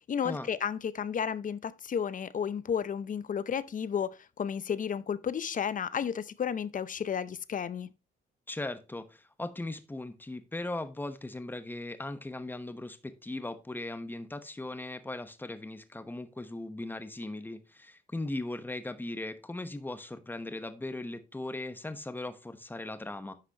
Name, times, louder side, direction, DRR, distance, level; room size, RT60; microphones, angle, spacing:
voice 1, 0.1-7.9, left 7 dB, 40° left, 0.6 m, -32 dB
voice 2, 8.5-23.3, left 2 dB, 10° left, 1.0 m, -38 dB
10.0 x 5.9 x 2.9 m
cardioid pair, 90°, 20 cm